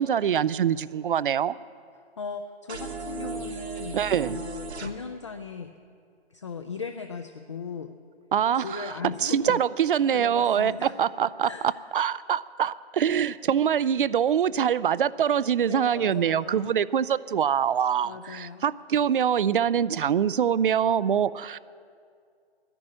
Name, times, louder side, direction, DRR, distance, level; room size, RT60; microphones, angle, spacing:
voice 1, 0.0-1.5 3.9-4.4 8.3-8.9 9.2-11.5 11.9-21.6, right 8 dB, 55° right, 19 dB, 0.4 m, -24 dB
voice 2, 2.2-4.0 4.2-5.7 6.3-7.9 8.5-9.6 10.1-10.9 11.4-11.7 15.6-16.7 18.0-18.6, left 5 dB, 30° left, 6 dB, 0.4 m, -37 dB
sound 1, 2.7-4.9, right 3 dB, 80° right, 1.3 m, -35 dB
12.0 x 10.5 x 8.8 m, 2.3 s
hypercardioid pair, 150°, 32 cm